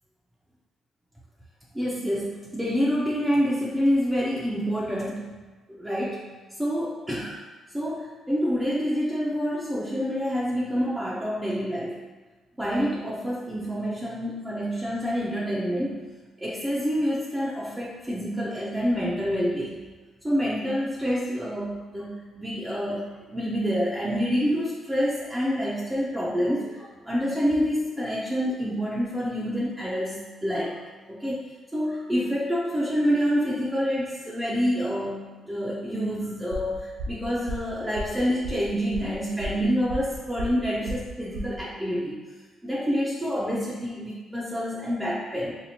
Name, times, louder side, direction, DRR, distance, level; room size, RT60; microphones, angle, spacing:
voice 1, 1.7-5.4 5.7-7.4 7.7-12.0 12.6-16.0 16.4-19.8 20.2-30.8 31.1-31.4 31.7-42.2 42.6-45.5, equal, 10° right, -7 dB, 0.5 m, -27 dB
sound 1, 36.5-41.6, equal, 70° right, 0.7 m, -35 dB
4.2 x 2.4 x 2.7 m, 1.3 s
cardioid pair, 90°, 0 cm